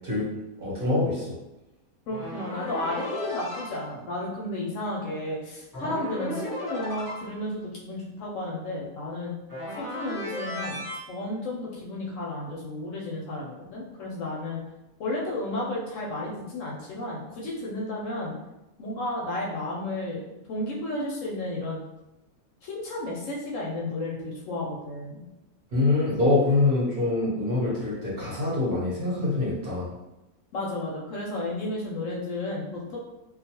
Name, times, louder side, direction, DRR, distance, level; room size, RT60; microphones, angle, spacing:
voice 1, 0.6-1.3 25.7-29.9, left 2 dB, 45° right, -8 dB, 0.9 m, -24 dB
voice 2, 2.1-9.3 9.8-10.8 11.1-14.6 15.0-18.3 18.8-21.8 22.6-25.2 30.5-33.0, left 1 dB, 70° left, -3 dB, 0.9 m, -33 dB
sound 1, 2.1-3.8 5.7-7.4 9.5-11.0, left 1 dB, 20° left, 0.6 m, -35 dB
2.4 x 2.3 x 2.8 m, 0.95 s
omnidirectional pair, 1.5 m